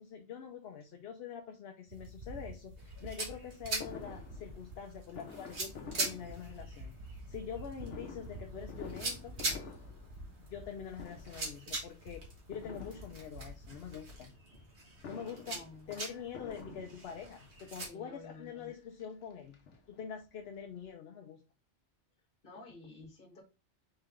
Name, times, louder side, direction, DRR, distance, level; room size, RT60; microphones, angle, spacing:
voice 1, 0.0-9.4 10.4-14.3 15.0-15.6 15.9-19.6 19.9-21.4, left 7 dB, 65° left, 5 dB, 0.8 m, -45 dB
sound 1, 1.9-14.1, equal, 85° right, 2.5 m, -50 dB
sound 2, 2.8-17.9, right 2 dB, 70° right, 1.8 m, -43 dB
Fireworks, 3.8-7.0 7.8-10.7 10.9-11.6 12.5-13.6 14.8-17.4 18.2-18.3 18.6-18.7 19.0-20.3 20.6-20.7 20.8-20.9, left 5 dB, 90° left, 1.1 m, -50 dB
voice 2, 15.4-15.9 17.8-18.7 22.4-23.4, left 3 dB, 50° left, 2 dB, 1.6 m, -51 dB
4.5 x 3.3 x 3.5 m, 0.29 s
omnidirectional pair, 1.2 m